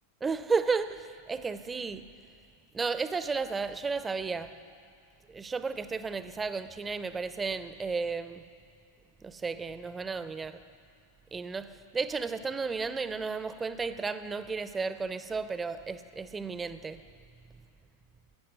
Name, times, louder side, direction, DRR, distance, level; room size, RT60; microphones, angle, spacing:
voice 1, 0.2-2.1 2.7-4.5 5.3-8.4 9.2-10.6 11.3-17.0, right 4 dB, 15° right, 13 dB, 0.6 m, -33 dB
17.0 x 9.8 x 6.1 m, 2.4 s
figure-of-eight pair, 90°, 0 cm